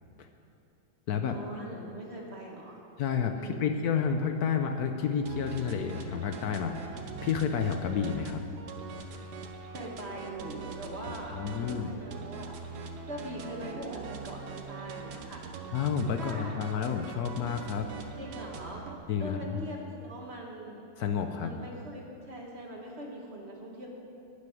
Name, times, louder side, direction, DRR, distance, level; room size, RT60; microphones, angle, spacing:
voice 1, 1.3-2.8 3.4-3.7 9.7-12.5 13.1-15.5 16.1-16.5 18.2-18.9 19.2-20.8 21.3-23.9, right 1 dB, 40° right, -1 dB, 1.7 m, -41 dB
voice 2, 3.0-8.4 11.3-11.9 15.7-17.9 19.1-19.6 21.0-21.5, left 7 dB, 70° left, 6 dB, 1.1 m, -30 dB
sound 1, 5.3-19.0, right 5 dB, 75° right, 1.4 m, -42 dB
12.0 x 6.4 x 9.2 m, 2.7 s
omnidirectional pair, 1.8 m